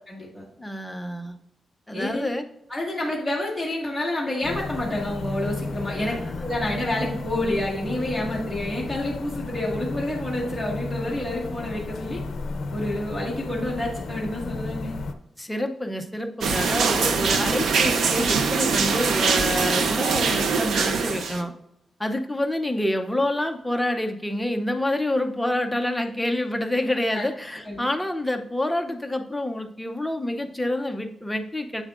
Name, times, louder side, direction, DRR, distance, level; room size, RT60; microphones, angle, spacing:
voice 1, 0.1-0.4 1.9-2.3 2.7-12.2 12.7-14.9 27.1-27.2 27.6-27.9, left 1 dB, 10° right, -4 dB, 1.6 m, -29 dB
voice 2, 0.6-1.4 1.9-2.4 6.0-6.5 15.4-21.5 22.0-31.8, left 1 dB, 5° left, 5 dB, 0.5 m, -27 dB
sound 1, 4.4-15.1, left 3 dB, 55° left, 0.6 m, -33 dB
sound 2, 16.4-21.4, right 5 dB, 70° right, 0.6 m, -23 dB
8.1 x 7.1 x 2.4 m, 0.79 s
wide cardioid pair, 180°, 0 cm